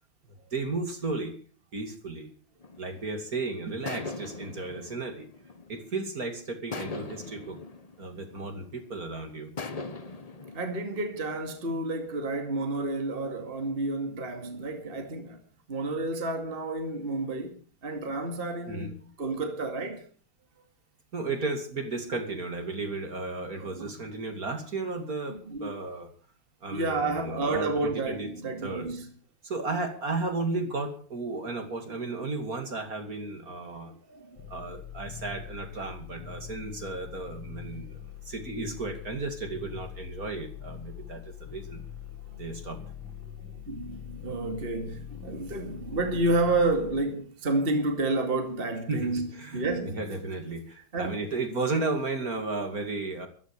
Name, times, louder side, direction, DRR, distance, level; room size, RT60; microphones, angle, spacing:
voice 1, 0.5-1.3 1.7-2.3 2.8-5.3 5.7-7.6 8.0-9.5 18.7-18.9 21.1-26.1 26.6-28.3 28.6-28.9 29.4-33.9 34.5-38.0 38.2-41.8 42.4-42.8 48.9-53.3, right 3 dB, 45° right, 2.8 m, -34 dB
sound 1, 2.6-3.3 3.9-6.1 6.7-9.0 9.6-11.8, left 3 dB, 30° left, 0.7 m, -41 dB
voice 2, 10.5-15.4 15.7-17.6 17.8-20.1 23.4-23.9 25.3-25.7 26.7-29.1 34.1-34.4 42.3-42.4 43.5-49.3 49.5-50.0 50.9-51.2, right 2 dB, 25° right, 2.3 m, -30 dB
sound 2, 34.4-47.0, left 9 dB, 65° left, 2.7 m, -43 dB
14.5 x 13.5 x 6.7 m
omnidirectional pair, 2.3 m